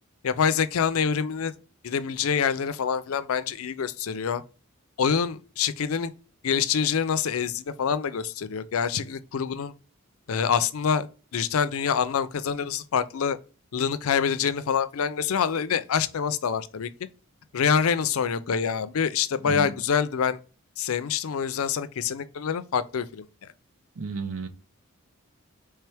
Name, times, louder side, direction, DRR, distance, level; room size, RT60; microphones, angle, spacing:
voice 1, 0.2-1.5 1.8-4.4 5.0-6.1 6.4-9.7 10.3-11.1 11.3-13.4 13.7-16.9 17.5-20.4 20.8-23.2, left 7 dB, 75° left, 0.5 m, -26 dB
voice 2, 24.0-24.5, right 4 dB, 70° right, 0.6 m, -32 dB
4.5 x 3.3 x 3.3 m
head